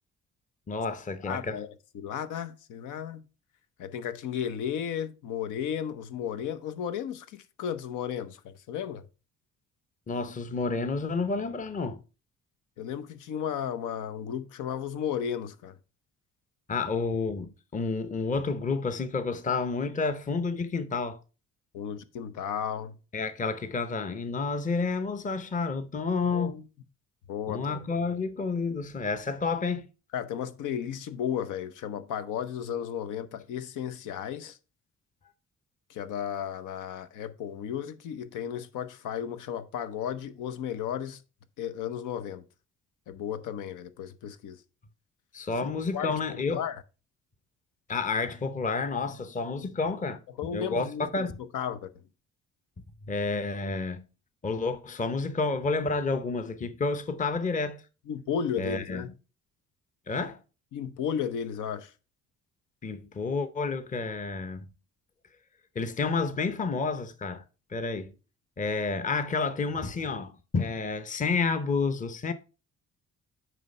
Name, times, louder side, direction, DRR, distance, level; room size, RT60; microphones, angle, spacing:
voice 1, 0.7-1.6 10.1-12.0 16.7-21.2 23.1-26.6 27.5-29.9 45.3-46.6 47.9-50.2 50.5-51.4 53.1-54.1 54.4-57.8 58.6-59.1 60.1-60.4 62.8-64.7 65.8-67.4 67.7-68.1 68.6-72.3, left 4 dB, 25° left, 0.7 m, -30 dB
voice 2, 1.2-1.7 1.9-3.2 3.8-9.0 12.8-15.8 21.7-23.0 26.3-26.6 27.3-27.7 30.1-34.6 35.9-41.2 41.6-42.5 43.1-44.6 45.6-46.8 50.4-51.3 51.5-52.0 58.1-59.1 60.7-61.9, left 8 dB, 85° left, 0.8 m, -34 dB
9.3 x 3.3 x 5.3 m
cardioid pair, 90°, 30 cm